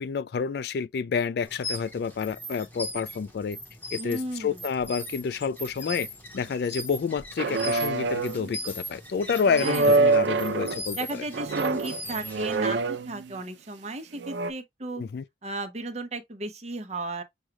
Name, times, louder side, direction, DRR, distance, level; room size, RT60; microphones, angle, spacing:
voice 1, 0.0-3.6 3.9-6.1 6.3-11.0 15.0-15.2, left 6 dB, 55° left, 0.3 m, -29 dB
sound 1, 1.4-12.7, left 1 dB, 10° left, 1.0 m, -39 dB
voice 2, 4.0-4.6 9.6-10.2 10.9-15.0 15.4-17.2, right 2 dB, 35° right, 0.8 m, -34 dB
sound 2, 7.4-8.5 9.4-10.8 11.3-13.4 14.2-14.5, right 3 dB, 70° right, 0.4 m, -25 dB
6.3 x 2.3 x 2.9 m
head